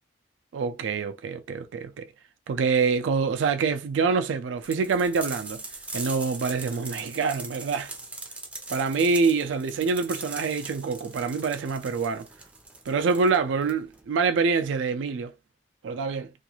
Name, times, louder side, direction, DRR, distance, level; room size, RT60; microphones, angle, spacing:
voice 1, 0.5-2.1 2.5-5.6 5.9-7.9 8.7-12.3 12.9-15.3 15.8-16.3, right 5 dB, 85° right, 0.3 m, -26 dB
sound 1, 4.6-14.0, right 2 dB, 5° right, 0.3 m, -40 dB
2.5 x 2.3 x 2.9 m
head